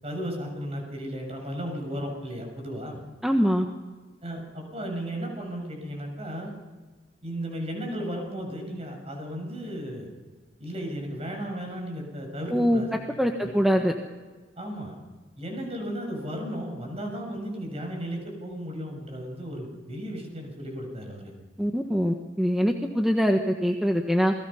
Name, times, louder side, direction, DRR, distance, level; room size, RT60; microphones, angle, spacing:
voice 1, 0.0-3.0 4.2-6.5 7.2-10.1 10.6-13.0 13.4-13.5 14.6-15.0 15.4-21.3, equal, 35° right, 2 dB, 7.2 m, -35 dB
voice 2, 3.2-3.6 12.5-12.8 13.2-13.9 21.6-24.3, equal, ahead, 2 dB, 1.3 m, -23 dB
28.5 x 20.5 x 5.7 m, 1.3 s
head